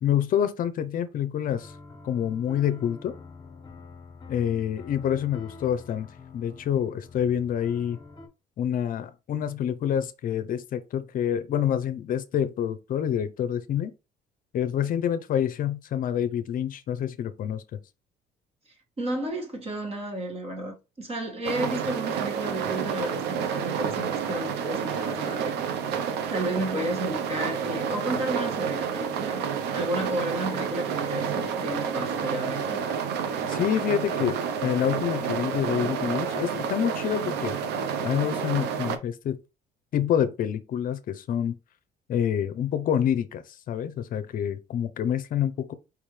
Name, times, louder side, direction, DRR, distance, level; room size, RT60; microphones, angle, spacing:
voice 1, 0.0-1.7 2.0-3.1 4.3-6.1 6.3-8.0 8.6-13.9 14.5-17.6 33.5-37.5 38.0-39.4 39.9-41.5 42.1-45.7, left 9 dB, 55° left, 0.6 m, -27 dB
sound 1, 1.5-8.3, left 4 dB, 25° left, 1.3 m, -46 dB
voice 2, 19.0-25.6 26.3-29.5 29.7-32.8, right 1 dB, 35° right, 1.8 m, -32 dB
sound 2, 21.4-39.0, right 7 dB, 80° right, 0.7 m, -29 dB
4.7 x 3.5 x 3.2 m
cardioid pair, 110°, 17 cm